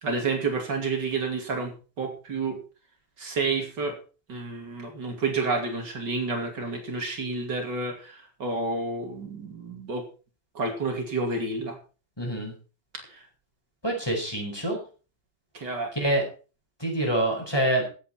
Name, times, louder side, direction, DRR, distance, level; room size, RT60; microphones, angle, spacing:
voice 1, 0.0-2.6 3.2-4.0 4.3-10.0 10.5-11.8 13.1-13.2 15.5-15.9, right 3 dB, 75° right, 3 dB, 3.2 m, -30 dB
voice 2, 12.2-12.5 13.8-14.8 15.9-16.2 16.8-17.9, right 1 dB, 15° left, 1 dB, 4.8 m, -26 dB
16.5 x 8.3 x 4.4 m, 0.35 s
omnidirectional pair, 1.9 m